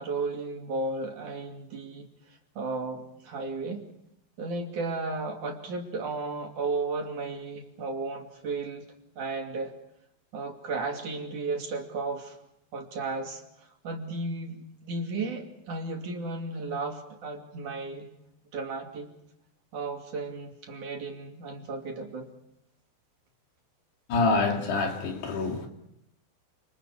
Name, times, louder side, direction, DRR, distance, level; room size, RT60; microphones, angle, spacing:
voice 1, 0.0-2.1 2.6-3.8 4.4-8.9 9.2-9.7 10.3-12.4 12.7-18.1 18.5-19.1 19.7-22.3, right 3 dB, 50° right, 3.8 m, -34 dB
voice 2, 24.1-25.7, left 3 dB, 75° left, 4.8 m, -26 dB
28.0 x 27.5 x 4.9 m
omnidirectional pair, 4.8 m